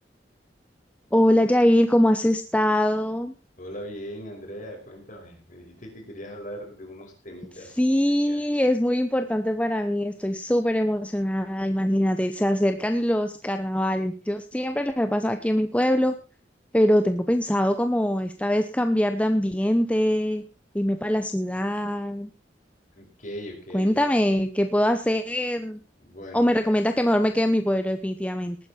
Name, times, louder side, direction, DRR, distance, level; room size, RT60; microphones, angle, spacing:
voice 1, 1.1-3.3 7.8-16.1 16.7-20.4 20.7-22.3 23.7-25.8 26.3-28.6, equal, 5° left, 7 dB, 0.7 m, -23 dB
voice 2, 3.6-7.8 8.3-8.4 22.9-24.2 26.0-26.7, equal, 45° left, 2 dB, 5.3 m, -40 dB
19.0 x 9.5 x 4.3 m, 0.34 s
head